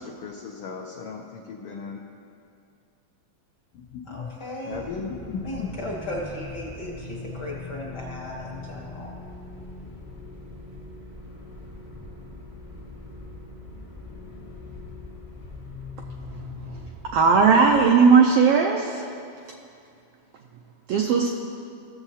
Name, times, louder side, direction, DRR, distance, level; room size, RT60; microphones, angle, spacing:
voice 1, 0.0-2.0 3.7-4.4 4.6-5.7, left 5 dB, 80° left, 0 dB, 1.2 m, -36 dB
voice 2, 4.1-4.8 5.4-9.1, left 1 dB, 55° left, -3 dB, 1.1 m, -36 dB
sound 1, 4.7-18.1, left 2 dB, 30° left, 0.7 m, -41 dB
voice 3, 17.1-19.0 20.9-21.3, right 5 dB, 80° right, 1 dB, 1.3 m, -17 dB
17.0 x 7.1 x 2.8 m, 2.4 s
omnidirectional pair, 3.3 m